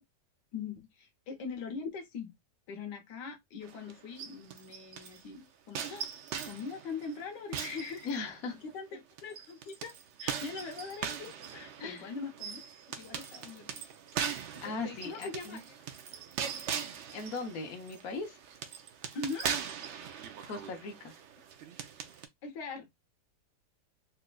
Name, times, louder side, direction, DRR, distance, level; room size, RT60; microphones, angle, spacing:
voice 1, 0.5-2.3 2.7-6.1 6.4-9.9 10.2-12.6 13.0-13.7 14.5-15.8 19.1-19.5 22.4-22.9, left 4 dB, 90° left, 1.5 m, -42 dB
sound 1, 3.6-5.2 5.7-8.6 9.2-22.3, right 7 dB, 90° right, 0.6 m, -40 dB
voice 2, 8.0-8.5 11.8-12.1 14.6-15.6 17.1-18.4 20.4-21.1, left 3 dB, 60° left, 1.3 m, -38 dB
4.2 x 2.5 x 2.2 m
omnidirectional pair, 1.8 m